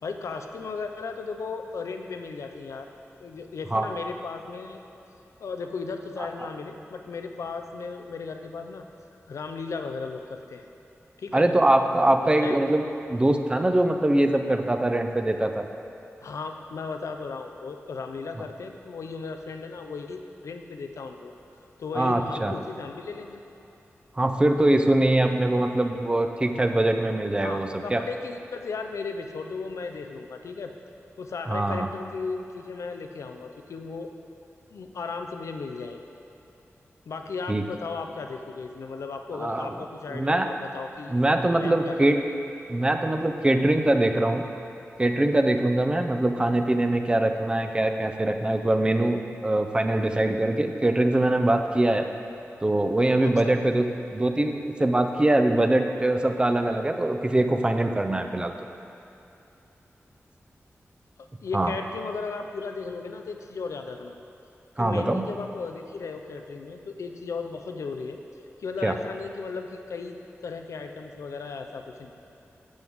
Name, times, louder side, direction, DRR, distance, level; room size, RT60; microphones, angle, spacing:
voice 1, 0.0-2.9 3.2-4.8 5.4-8.8 9.3-10.6 11.2-11.5 12.2-12.6 16.2-21.3 21.8-23.4 27.4-30.7 31.2-34.1 34.7-36.1 37.1-42.1 53.2-53.6 61.4-64.2 64.8-68.2 68.6-70.2 70.4-72.1, left 4 dB, 90° left, 5 dB, 0.6 m, -36 dB
voice 2, 11.3-12.8 13.1-15.7 21.9-22.5 24.2-28.0 31.5-31.9 37.5-37.6 39.4-39.7 40.1-40.5 41.1-42.2 42.7-44.4 45.0-52.0 52.6-53.9 54.1-58.5 61.5-61.7 64.8-65.2 68.8-68.9, right 1 dB, 20° right, 6 dB, 0.6 m, -23 dB
11.5 x 7.8 x 3.6 m, 2.8 s
wide cardioid pair, 105°, 5 cm